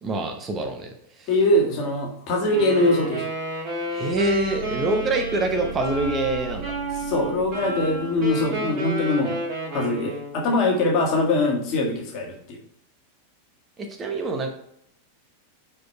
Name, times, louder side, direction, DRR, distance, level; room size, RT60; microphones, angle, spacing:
voice 1, 0.0-1.3 3.9-6.7 14.0-14.5, right 2 dB, 25° right, 3 dB, 0.9 m, -25 dB
voice 2, 1.3-3.2 7.0-9.4 9.7-12.6, left 2 dB, 40° left, -1 dB, 1.7 m, -22 dB
Wind instrument woodwind instrument, 2.5-10.4, right 1 dB, 45° right, 2.6 m, -31 dB
sound 1, 4.1-9.0, right 8 dB, 65° right, 0.6 m, -38 dB
4.8 x 4.7 x 4.5 m, 0.72 s
figure-of-eight pair, 90°, 0 cm